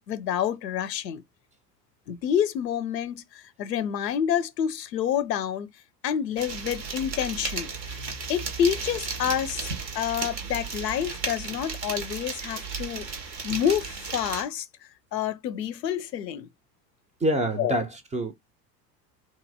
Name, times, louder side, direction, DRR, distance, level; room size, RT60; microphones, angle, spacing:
voice 1, 0.1-1.2 2.1-5.7 6.0-13.1 13.4-14.7 15.1-16.5 17.6-17.8, left 9 dB, 85° left, 0.5 m, -28 dB
sound 1, 6.4-14.4, right 5 dB, 90° right, 0.8 m, -34 dB
voice 2, 17.2-18.3, right 1 dB, 15° right, 0.5 m, -26 dB
2.9 x 2.5 x 2.6 m
figure-of-eight pair, 75°, 49 cm